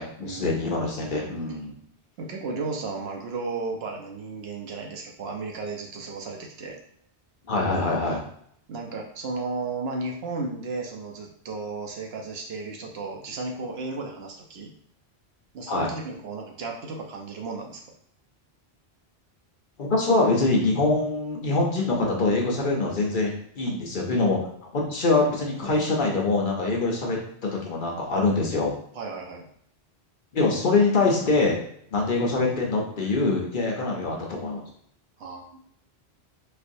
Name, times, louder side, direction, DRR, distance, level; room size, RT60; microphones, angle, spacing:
voice 1, 0.0-1.8 7.5-8.2 15.7-15.9 19.8-24.4 24.7-27.2 27.5-28.8 30.3-31.6 31.9-34.6, left 3 dB, 55° left, -1 dB, 0.8 m, -24 dB
voice 2, 2.2-6.8 8.7-14.7 15.5-17.8 28.9-29.4 35.2-35.6, right 3 dB, 70° right, 1 dB, 0.9 m, -34 dB
4.3 x 2.3 x 2.6 m, 0.68 s
omnidirectional pair, 1.1 m